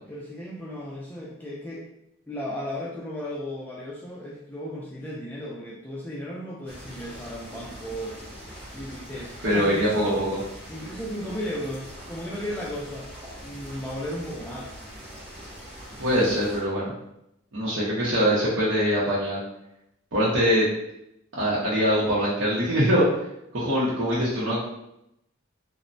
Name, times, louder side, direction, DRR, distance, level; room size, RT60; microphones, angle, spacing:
voice 1, 0.1-1.9 2.3-8.2 8.7-10.2 10.7-13.1 13.4-14.7, equal, 10° left, -6 dB, 0.3 m, -35 dB
sound 1, 6.7-16.6, equal, 30° right, 0.9 m, -42 dB
voice 2, 9.4-10.4 16.0-16.9 17.5-19.4 20.1-20.7 21.3-23.0 23.5-24.6, equal, 70° right, -8 dB, 0.7 m, -23 dB
3.1 x 2.0 x 2.5 m, 0.80 s
head